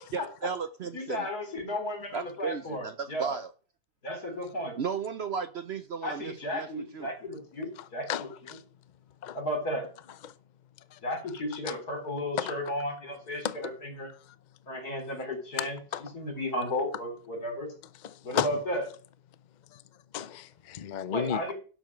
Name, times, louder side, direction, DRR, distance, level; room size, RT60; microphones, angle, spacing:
voice 1, 0.1-1.3 2.1-3.5 4.8-7.1, right 6 dB, 55° right, 0.7 m, -35 dB
voice 2, 0.9-3.3 4.0-4.7 6.0-8.3 9.3-9.9 11.0-14.1 14.7-15.8 16.1-17.7 18.2-18.8 21.1-21.5, left 1 dB, 75° left, 4.4 m, -34 dB
voice 3, 7.8-8.6 9.2-9.4 10.2-10.3 10.9-11.0 11.7-11.8 12.4-12.6 13.4-13.7 15.6-16.0 18.0-18.5 19.7-19.8 20.1-21.5, left 9 dB, 55° left, 0.5 m, -34 dB
12.0 x 7.7 x 6.2 m
omnidirectional pair, 1.6 m